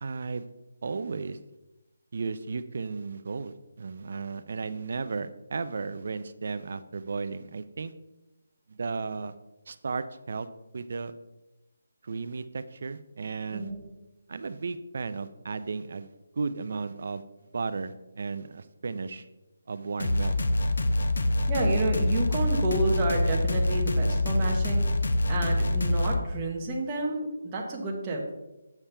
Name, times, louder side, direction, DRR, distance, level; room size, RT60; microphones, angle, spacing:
voice 1, 0.0-0.5 0.8-1.4 2.1-7.9 8.7-9.3 9.7-10.5 10.7-11.1 12.0-13.7 14.3-17.2 17.5-19.2 19.7-20.3, right 4 dB, 45° right, 12 dB, 0.4 m, -34 dB
sound 1, 20.0-26.2, left 1 dB, 60° left, 0.7 m, -25 dB
voice 2, 21.5-24.9 25.3-28.4, right 2 dB, 15° right, -2 dB, 0.9 m, -30 dB
8.5 x 7.2 x 3.3 m, 1.0 s
hypercardioid pair, 180°, 0 cm